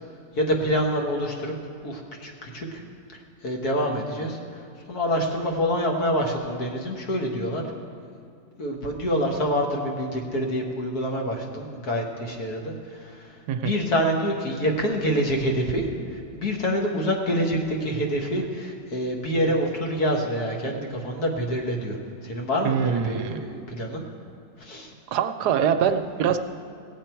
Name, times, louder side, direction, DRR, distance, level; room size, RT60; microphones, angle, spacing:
voice 1, 0.4-1.5 1.8-2.8 3.1-7.6 8.6-15.8 16.1-22.0 22.2-24.0 24.6-24.9, equal, 60° left, 0 dB, 1.9 m, -26 dB
voice 2, 22.6-23.5 25.1-26.4, right 8 dB, 75° right, 8 dB, 1.1 m, -24 dB
17.0 x 8.1 x 4.5 m, 2.5 s
omnidirectional pair, 1.9 m